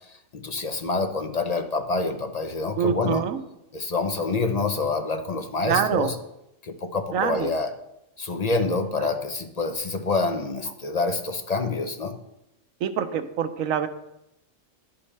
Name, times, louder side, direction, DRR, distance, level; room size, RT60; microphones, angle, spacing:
voice 1, 0.1-3.3 3.7-6.2 6.6-7.7 8.2-12.2, left 3 dB, 45° left, 6 dB, 0.6 m, -27 dB
voice 2, 2.8-3.4 5.6-6.1 7.1-7.5 9.0-9.1 12.8-13.9, right 8 dB, 85° right, 10 dB, 1.1 m, -25 dB
11.5 x 8.7 x 3.2 m, 0.85 s
omnidirectional pair, 1.4 m